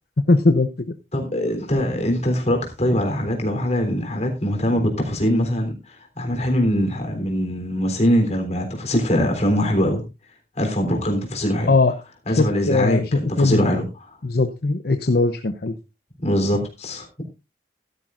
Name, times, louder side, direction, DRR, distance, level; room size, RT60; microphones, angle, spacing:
voice 1, 0.3-0.9 11.7-11.9 12.4-13.1 13.4-13.8 14.2-15.7, left 3 dB, 60° left, 9 dB, 0.7 m, -20 dB
voice 2, 1.1-10.0 10.6-11.7 12.3-13.8 16.2-17.2, equal, 40° left, 3 dB, 3.5 m, -22 dB
15.0 x 12.0 x 2.5 m, 0.26 s
head